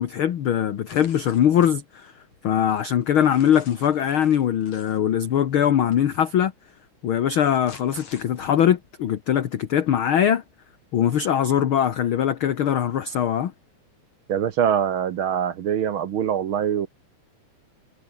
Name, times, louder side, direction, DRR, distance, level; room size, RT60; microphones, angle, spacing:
voice 1, 0.0-2.1 2.4-6.5 7.0-10.4 10.9-13.5, left 9 dB, 55° left, 1.7 m, -21 dB
sound 1, 0.9-1.8 2.3-5.0 5.9-6.1 7.3-8.7, left 5 dB, 70° left, 5.3 m, -48 dB
voice 2, 14.3-16.9, right 9 dB, 60° right, 1.5 m, -23 dB
omnidirectional pair, 3.4 m